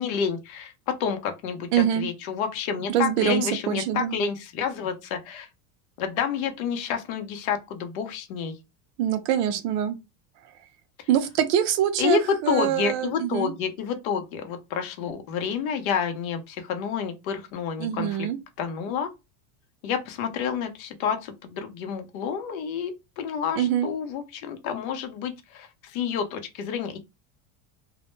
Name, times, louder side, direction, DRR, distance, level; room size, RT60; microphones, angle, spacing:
voice 1, 0.0-5.5 6.0-8.5 12.0-18.1 18.6-19.1 19.8-22.9 23.2-27.0, left 7 dB, 70° left, 0.7 m, -29 dB
voice 2, 1.7-2.1 2.9-4.2 9.0-10.0 11.1-13.5 17.8-18.4 23.6-23.9, right 10 dB, 55° right, 0.4 m, -24 dB
2.1 x 2.1 x 3.0 m
cardioid pair, 180°, 43 cm